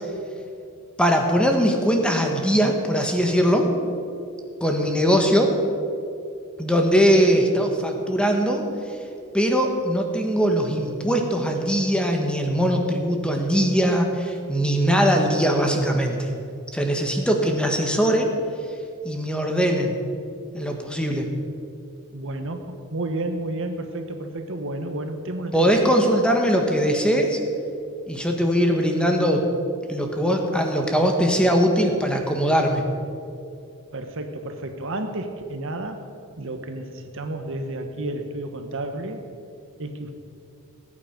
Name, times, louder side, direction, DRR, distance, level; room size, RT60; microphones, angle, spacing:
voice 1, 1.0-3.7 4.6-5.6 6.6-8.6 9.3-16.3 16.7-18.3 19.0-20.0 20.5-21.3 25.5-27.4 28.1-29.4 29.9-32.8, equal, 5° left, 3 dB, 1.4 m, -21 dB
voice 2, 22.1-26.2 33.9-36.0 36.4-39.3 39.8-40.1, right 1 dB, 60° right, 6 dB, 1.2 m, -31 dB
19.0 x 8.7 x 5.2 m, 2.5 s
head